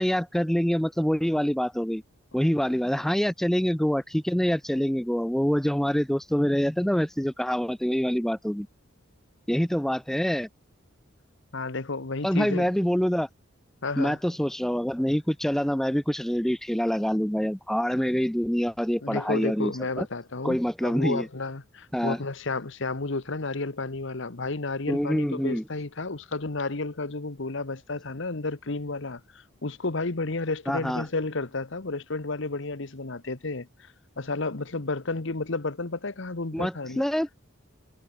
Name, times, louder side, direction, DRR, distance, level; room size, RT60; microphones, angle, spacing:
voice 1, 0.0-2.0 2.3-8.7 9.5-10.5 12.2-13.3 14.0-20.1 20.4-21.3 21.9-22.2 24.9-25.6 30.7-31.0 36.5-37.3, equal, ahead, 0.4 m, -25 dB
voice 2, 11.5-12.7 13.8-14.2 19.0-37.0, left 3 dB, 60° left, 1.2 m, -32 dB
head